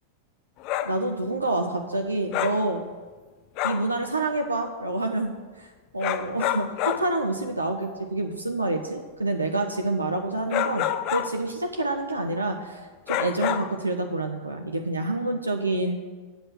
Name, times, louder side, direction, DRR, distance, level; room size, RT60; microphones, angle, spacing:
sound 1, 0.6-1.0 2.3-2.7 3.6-3.9 6.0-7.1 10.5-11.4 13.1-13.8, left 12 dB, 40° left, 0.5 m, -28 dB
voice 1, 0.8-2.8 3.6-10.8 11.1-12.8 13.1-16.1, right 2 dB, 80° right, 3 dB, 0.7 m, -27 dB
7.8 x 6.1 x 7.8 m, 1.4 s
figure-of-eight pair, 90°, 0 cm